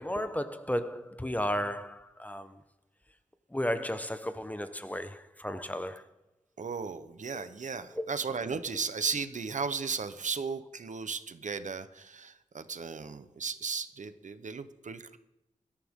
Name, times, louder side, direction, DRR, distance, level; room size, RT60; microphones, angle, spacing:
voice 1, 0.0-2.6 3.5-6.1 7.3-7.5 7.9-8.2, equal, 10° left, 0.8 m, -34 dB
voice 2, 6.6-15.2, right 5 dB, 70° right, 0.9 m, -35 dB
18.0 x 13.5 x 3.7 m
wide cardioid pair, 100°, 13 cm